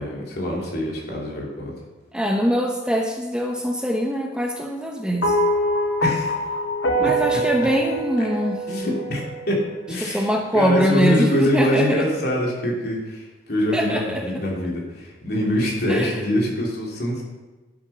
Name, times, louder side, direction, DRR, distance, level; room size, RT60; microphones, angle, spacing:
voice 1, 0.0-1.7 6.0-6.3 7.0-7.4 8.2-8.3 8.7-17.2, left 1 dB, 55° left, -3 dB, 3.0 m, -24 dB
voice 2, 2.1-5.3 7.0-8.6 10.0-12.1 13.7-14.2 15.9-16.1, equal, 5° right, 1 dB, 0.8 m, -23 dB
sound 1, 5.2-9.6, right 1 dB, 75° left, 1.1 m, -24 dB
11.0 x 7.1 x 5.6 m, 1.2 s
head